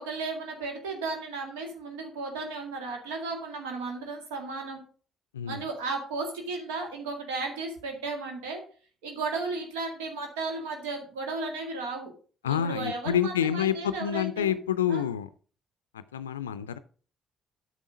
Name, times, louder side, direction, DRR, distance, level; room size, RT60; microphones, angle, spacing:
voice 1, 0.0-4.8 5.5-8.6 9.0-12.1 12.4-14.5 14.9-15.0, right 3 dB, 75° right, 2 dB, 2.0 m, -34 dB
voice 2, 12.4-15.3 15.9-16.8, left 9 dB, 85° left, 14 dB, 0.4 m, -28 dB
9.0 x 6.2 x 5.1 m, 0.41 s
hypercardioid pair, 50°, 0 cm